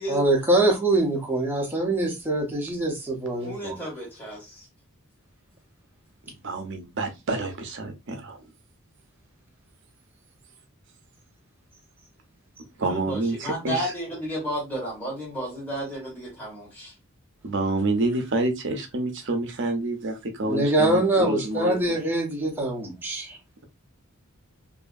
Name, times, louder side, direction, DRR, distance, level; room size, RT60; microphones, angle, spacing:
voice 1, 0.1-3.8 20.4-23.4, right 2 dB, 10° right, 0.7 m, -24 dB
voice 2, 3.4-4.7 12.8-16.9, right 1 dB, 10° left, 1.2 m, -32 dB
voice 3, 6.4-8.4 12.8-13.9 17.4-22.0, right 2 dB, 55° right, 0.6 m, -28 dB
2.7 x 2.6 x 2.4 m
head